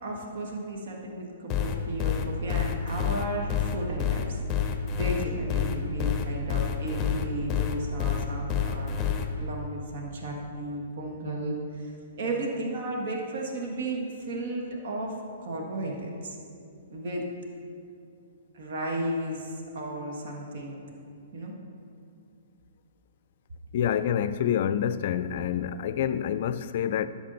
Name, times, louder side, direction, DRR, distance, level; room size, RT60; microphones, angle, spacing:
voice 1, 0.0-4.4 4.9-9.0 9.4-11.9 12.2-16.4 16.9-17.3 18.5-20.8 21.3-21.5, right 1 dB, 60° right, 1.6 m, -34 dB
sound 1, 1.5-9.3, left 8 dB, 25° left, 0.7 m, -28 dB
voice 2, 23.7-27.1, left 9 dB, 55° left, 0.4 m, -27 dB
10.5 x 7.0 x 4.0 m
hypercardioid pair, 130°, 0 cm